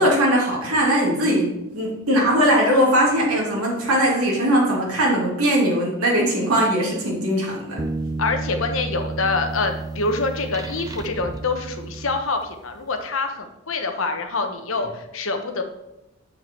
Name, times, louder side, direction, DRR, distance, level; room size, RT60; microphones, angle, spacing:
voice 1, 0.0-7.8, equal, 85° right, -3 dB, 2.4 m, -20 dB
sound 1, 7.8-12.7, right 3 dB, 15° right, 0.3 m, -31 dB
voice 2, 8.2-15.6, left 3 dB, 65° left, 6 dB, 1.0 m, -26 dB
7.5 x 5.6 x 4.5 m, 0.90 s
head